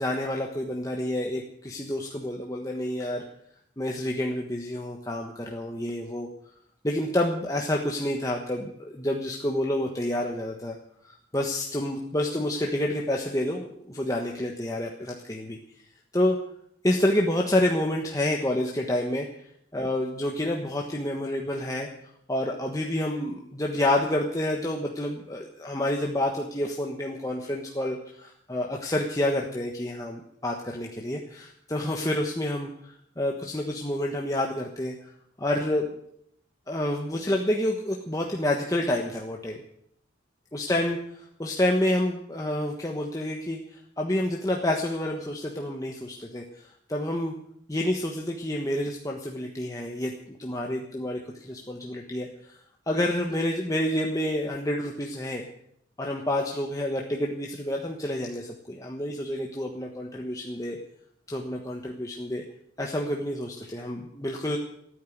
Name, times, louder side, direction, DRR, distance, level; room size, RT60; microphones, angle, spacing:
voice 1, 0.0-3.2 3.8-6.3 6.8-10.8 11.0-15.6 16.1-16.4 16.8-19.3 19.7-21.9 22.3-35.1 35.4-35.9 36.7-39.6 40.5-47.3 47.7-52.6 52.9-55.4 56.0-60.8 61.3-62.4 62.8-64.6, left 1 dB, 20° left, 0 dB, 1.3 m, -28 dB
15.0 x 9.5 x 9.4 m, 0.72 s
head